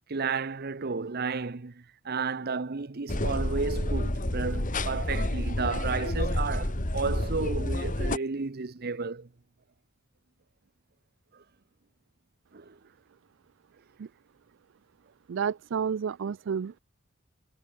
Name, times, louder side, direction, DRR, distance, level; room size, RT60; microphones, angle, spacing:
voice 1, 0.1-9.3 12.5-12.8, right 4 dB, 50° right, 0.8 m, -32 dB
sound 1, 3.1-8.2, left 1 dB, 40° left, 2.3 m, -29 dB
voice 2, 15.3-16.8, right 7 dB, 65° right, 0.4 m, -30 dB
head